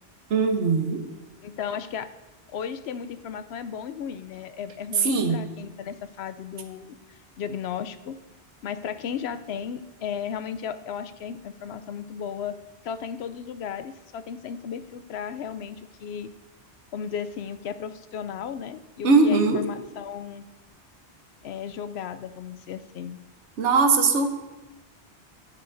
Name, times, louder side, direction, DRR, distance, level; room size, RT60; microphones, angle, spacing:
voice 1, 0.3-1.0 5.0-5.4 19.0-19.6 23.6-24.3, right 4 dB, 85° right, 6 dB, 1.2 m, -20 dB
voice 2, 1.4-2.1 2.5-8.2 8.6-12.6 12.8-16.3 16.9-20.4 21.4-23.2, left 7 dB, 70° left, 11 dB, 0.8 m, -35 dB
11.5 x 9.7 x 2.6 m, 1.1 s
omnidirectional pair, 1.1 m